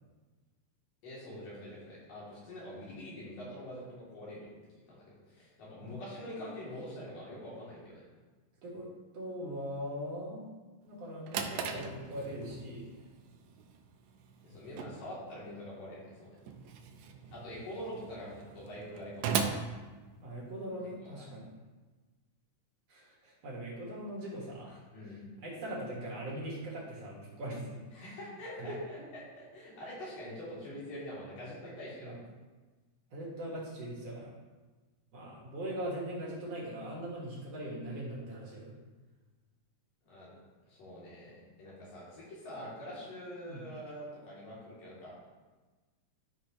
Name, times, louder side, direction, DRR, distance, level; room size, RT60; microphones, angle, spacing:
voice 1, 1.0-4.5 4.9-8.0 14.4-16.4 17.3-19.6 21.0-21.2 24.9-25.2 27.9-28.8 29.4-32.1 40.0-40.3 40.7-45.1, equal, 85° left, -7 dB, 4.6 m, -45 dB
voice 2, 8.6-10.5 10.8-13.0 20.2-21.5 22.9-24.8 25.4-27.9 28.6-29.0 32.0-32.2 33.1-34.3 35.1-38.8 43.5-43.6, right 1 dB, 55° right, -4 dB, 2.6 m, -40 dB
Drawer open or close, 10.9-20.7, right 6 dB, 75° right, 1.8 m, -40 dB
12.0 x 6.2 x 3.1 m, 1.3 s
omnidirectional pair, 3.7 m